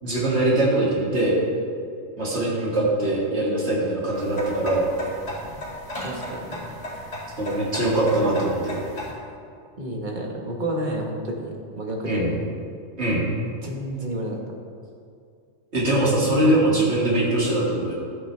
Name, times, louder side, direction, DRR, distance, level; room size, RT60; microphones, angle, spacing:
voice 1, 0.0-1.4 2.2-4.9 7.4-8.8 12.0-12.3 13.0-13.3 15.7-17.9, right 1 dB, 55° right, -6 dB, 2.6 m, -22 dB
clock-tick-bell, 4.1-9.1, equal, 70° left, 2.7 m, -35 dB
voice 2, 6.0-6.7 9.8-12.4 13.6-14.4, right 1 dB, 40° right, 0 dB, 1.4 m, -30 dB
13.0 x 8.9 x 3.3 m, 2.3 s
omnidirectional pair, 1.3 m